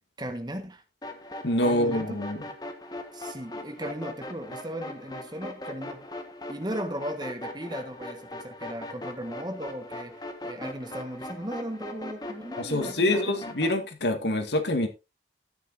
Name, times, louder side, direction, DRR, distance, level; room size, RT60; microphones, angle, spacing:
voice 1, 0.2-0.8 1.6-2.2 3.1-6.0 6.5-13.4, equal, 25° right, 1.5 m, -36 dB
sound 1, 1.0-13.8, left 1 dB, 20° left, 1.5 m, -40 dB
voice 2, 1.4-2.4 12.6-14.9, left 1 dB, 75° left, 2.1 m, -26 dB
13.0 x 9.6 x 2.7 m
head